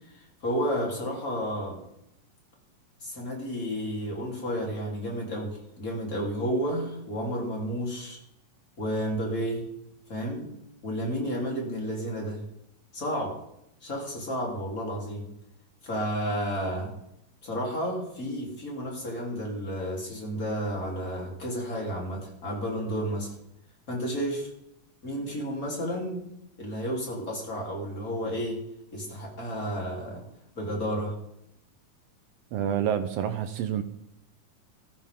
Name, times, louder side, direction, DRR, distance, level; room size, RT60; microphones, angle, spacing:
voice 1, 0.1-1.8 3.0-8.2 8.8-9.6 10.1-10.5 10.8-12.4 12.9-13.4 13.8-15.3 15.8-16.9 17.4-23.3 23.9-24.5 25.0-26.2 26.6-28.6 28.9-30.2 30.6-31.2, equal, 25° left, -2 dB, 3.6 m, -31 dB
voice 2, 32.5-33.8, right 9 dB, 80° right, 8 dB, 1.4 m, -28 dB
14.5 x 13.5 x 3.7 m, 0.80 s
omnidirectional pair, 3.7 m